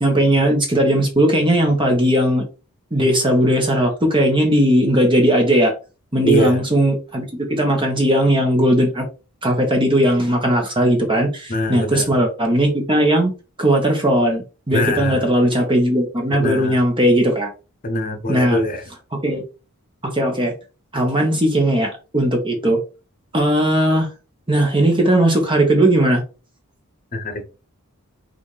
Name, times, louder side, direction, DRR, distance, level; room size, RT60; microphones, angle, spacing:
voice 1, 0.0-2.4 2.9-5.7 6.1-9.1 9.4-13.3 13.6-17.5 18.3-18.6 19.2-19.4 20.0-20.5 20.9-22.8 23.3-24.1 24.5-26.2, right 1 dB, 25° right, 1.2 m, -17 dB
voice 2, 6.2-6.6 11.5-12.1 14.7-15.3 16.3-16.8 17.8-18.8 27.1-27.4, equal, 40° left, 0.8 m, -22 dB
6.1 x 2.6 x 3.3 m
head